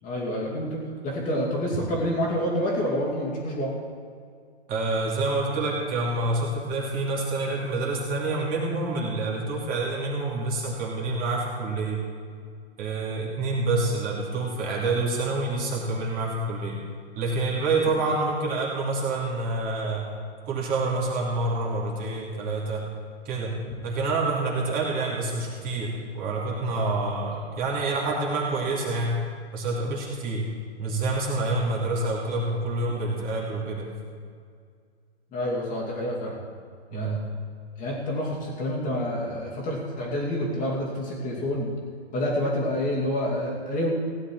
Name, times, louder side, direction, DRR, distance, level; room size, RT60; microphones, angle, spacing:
voice 1, 0.0-3.7 17.8-18.0 35.3-36.3 36.9-37.2 37.8-41.7 42.1-43.9, equal, 25° left, -4 dB, 2.5 m, -28 dB
voice 2, 4.7-12.0 12.8-16.8 17.2-20.1 20.5-22.9 23.2-23.5 23.8-29.2 29.5-30.5 30.8-33.9 36.9-37.2, right 2 dB, 25° right, -3 dB, 2.7 m, -27 dB
16.5 x 10.0 x 4.7 m, 2.1 s
hypercardioid pair, 130°, 34 cm